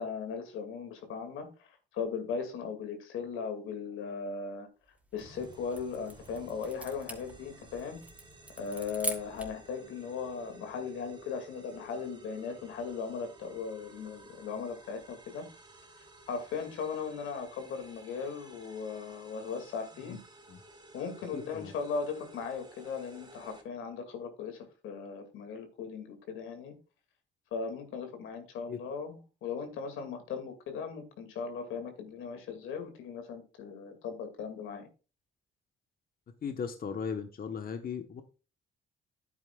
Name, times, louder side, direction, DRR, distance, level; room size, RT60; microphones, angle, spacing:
voice 1, 0.0-4.7 5.1-8.0 8.6-15.5 16.3-20.2 20.9-26.8 27.5-34.9, left 5 dB, 85° left, 2.3 m, -38 dB
sound 1, 5.0-9.6, right 1 dB, 5° right, 2.7 m, -43 dB
sound 2, 5.2-23.6, right 1 dB, 25° right, 3.4 m, -54 dB
voice 2, 21.3-21.7 28.7-28.8 36.4-38.2, left 6 dB, 50° left, 1.1 m, -37 dB
10.5 x 8.9 x 2.4 m
cardioid pair, 90°, 20 cm